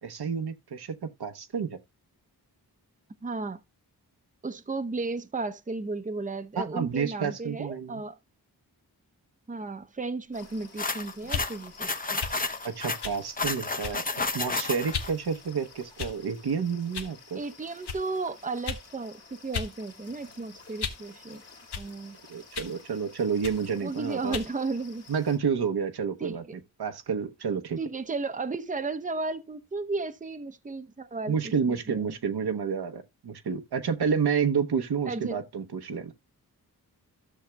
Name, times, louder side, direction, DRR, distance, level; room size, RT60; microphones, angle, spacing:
voice 1, 0.0-0.9 1.2-1.8 6.6-8.0 12.6-14.0 14.3-17.4 22.3-24.4 25.1-26.4 26.8-27.8 31.3-36.1, right 6 dB, 80° right, 1.0 m, -29 dB
voice 2, 3.2-3.6 4.4-8.2 9.5-12.2 17.3-21.4 21.8-22.2 23.8-25.1 26.2-26.4 27.8-31.4 31.7-32.1 35.1-35.4, right 3 dB, 20° right, 0.8 m, -34 dB
sound 1, 10.3-25.4, left 4 dB, 40° left, 2.2 m, -52 dB
sound 2, 10.8-15.1, left 3 dB, 20° left, 0.9 m, -31 dB
sound 3, 11.2-11.5 12.2-12.4 13.0-13.2 13.8-14.1 14.9-15.1 16.0-16.3 16.9-17.1 17.8-18.0 18.6-18.9 19.5-19.7 20.1-21.1 21.7-21.9 22.5-22.8 23.4-23.6 24.3-24.5, left 6 dB, 85° left, 1.1 m, -35 dB
13.5 x 6.4 x 2.3 m
wide cardioid pair, 65°, 38 cm